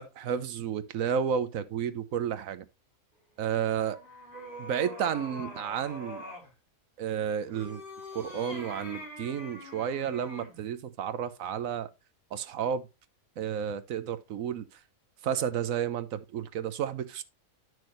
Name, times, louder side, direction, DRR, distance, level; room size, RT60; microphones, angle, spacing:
voice 1, 0.0-2.6 3.4-4.0 4.6-6.2 7.0-7.8 8.1-11.9 12.3-12.8 13.4-14.7 15.2-17.2, right 8 dB, 75° right, 1.2 m, -31 dB
sound 1, 3.5-6.5 7.4-10.6, left 1 dB, 35° left, 3.7 m, -44 dB
10.5 x 6.2 x 3.0 m
omnidirectional pair, 1.4 m